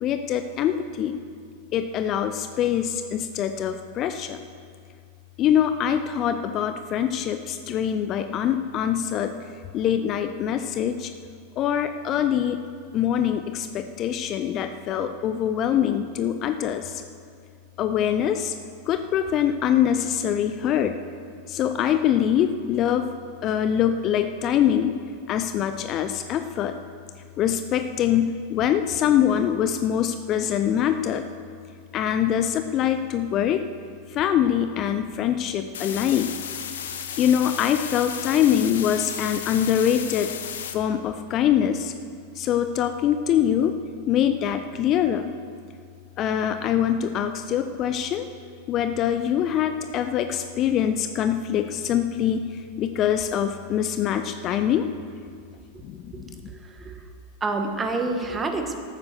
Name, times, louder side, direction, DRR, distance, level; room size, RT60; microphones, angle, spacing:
voice 1, 0.0-1.2 1.7-4.4 5.4-11.1 11.6-12.6 12.9-17.0 17.8-18.5 18.9-21.0 21.5-23.1 23.4-25.0 25.3-26.7 27.4-31.2 31.9-33.6 34.1-36.3 37.2-40.3 40.7-41.9 42.3-43.8 44.1-45.4 46.2-48.3 48.7-54.9 55.8-56.5, left 9 dB, 35° left, 8 dB, 0.6 m, -24 dB
sound 1, 35.7-40.7, left 8 dB, 60° left, 1.0 m, -34 dB
voice 2, 56.1-57.0 57.4-58.8, right 3 dB, 15° right, 5 dB, 1.4 m, -28 dB
12.5 x 9.4 x 6.7 m, 2.3 s
figure-of-eight pair, 90°, 0 cm